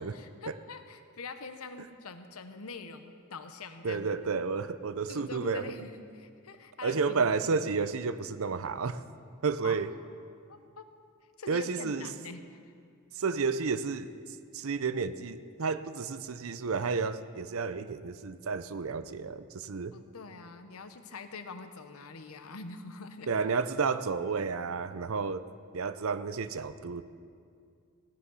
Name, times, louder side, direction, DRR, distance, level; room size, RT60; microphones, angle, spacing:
voice 1, 0.0-4.1 5.1-7.6 9.6-9.8 10.5-10.9 11.4-12.6 19.9-23.3, left 4 dB, 80° left, 8 dB, 0.9 m, -45 dB
voice 2, 3.8-5.7 6.8-9.0 9.4-9.9 11.5-12.1 13.2-14.1 14.5-19.9 23.3-25.4 25.7-27.0, right 5 dB, 70° right, 13 dB, 0.6 m, -31 dB
17.0 x 10.5 x 5.6 m, 2.3 s
head